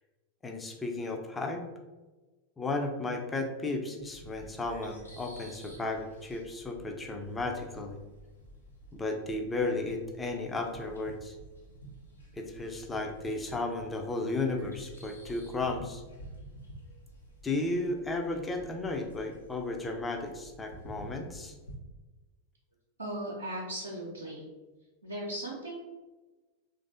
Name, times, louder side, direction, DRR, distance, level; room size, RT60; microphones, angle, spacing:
voice 1, 0.4-1.7 2.6-8.0 8.9-11.4 12.3-16.0 17.4-21.5, left 2 dB, 15° left, 3 dB, 0.4 m, -34 dB
sound 1, 4.0-21.7, right 1 dB, 80° left, 0.6 m, -50 dB
voice 2, 23.0-24.4 25.0-25.8, right 1 dB, 80° right, -4 dB, 0.6 m, -37 dB
3.2 x 2.5 x 2.5 m, 1.2 s
figure-of-eight pair, 90°, 0 cm